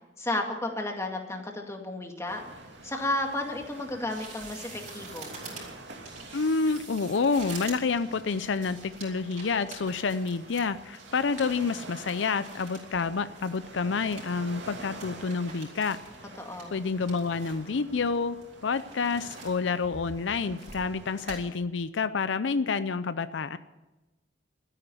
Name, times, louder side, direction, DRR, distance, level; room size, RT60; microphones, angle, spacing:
voice 1, 0.2-2.4 2.8-5.3 16.4-16.7, left 2 dB, 15° left, 2 dB, 2.1 m, -32 dB
sound 1, 2.3-21.4, right 2 dB, 75° right, 2.8 m, -47 dB
sound 2, 4.1-13.1 13.3-14.3 14.7-14.8 15.0-16.2 16.5-17.7 18.1-19.6 19.9-20.9 21.3-21.4, right 4 dB, 40° right, 5.3 m, -46 dB
voice 2, 6.3-16.0 16.7-18.4 18.6-23.6, left 4 dB, 75° left, 13 dB, 0.5 m, -28 dB
13.0 x 10.0 x 9.4 m, 1.1 s
head